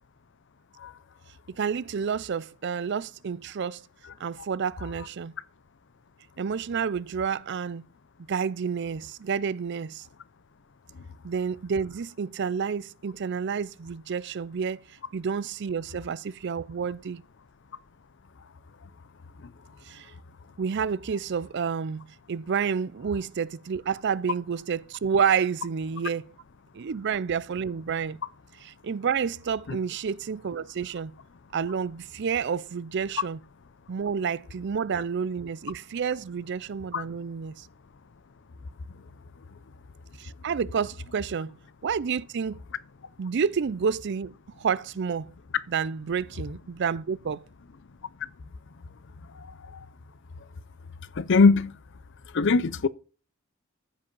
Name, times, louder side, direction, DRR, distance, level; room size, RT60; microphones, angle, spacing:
voice 1, 1.6-3.8 4.2-5.3 6.4-7.8 8.3-10.0 11.2-14.8 15.1-17.2 19.9-20.1 20.6-26.3 26.7-28.2 28.6-31.1 31.5-33.4 33.9-37.7 40.2-41.5 41.8-42.6 43.2-45.3 45.7-47.4, right 6 dB, 55° right, 0.4 m, -29 dB
voice 2, 51.2-51.8 52.3-52.9, left 4 dB, 60° left, 0.6 m, -21 dB
14.5 x 5.2 x 5.4 m
head